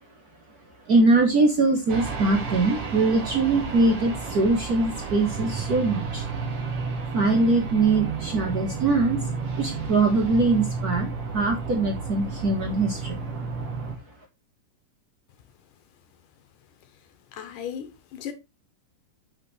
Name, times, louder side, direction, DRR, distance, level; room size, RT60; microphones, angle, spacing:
voice 1, 0.9-6.3 7.1-9.2 9.5-13.2, right 3 dB, 75° right, 0.8 m, -22 dB
sound 1, 1.9-13.9, right 5 dB, 55° right, 3.1 m, -32 dB
voice 2, 17.3-18.3, left 8 dB, 75° left, 2.5 m, -36 dB
8.5 x 6.3 x 3.2 m
omnidirectional pair, 3.7 m